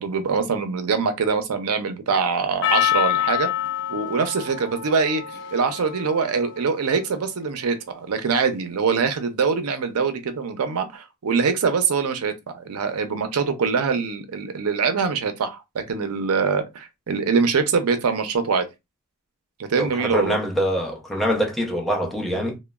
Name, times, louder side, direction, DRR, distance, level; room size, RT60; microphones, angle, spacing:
voice 1, 0.0-3.5 3.9-18.7 19.6-20.4, right 5 dB, 75° right, 0.5 m, -23 dB
Percussion, 2.6-7.2, left 11 dB, 55° left, 0.5 m, -27 dB
voice 2, 19.8-22.6, equal, ahead, 0.5 m, -24 dB
3.0 x 2.1 x 2.2 m
head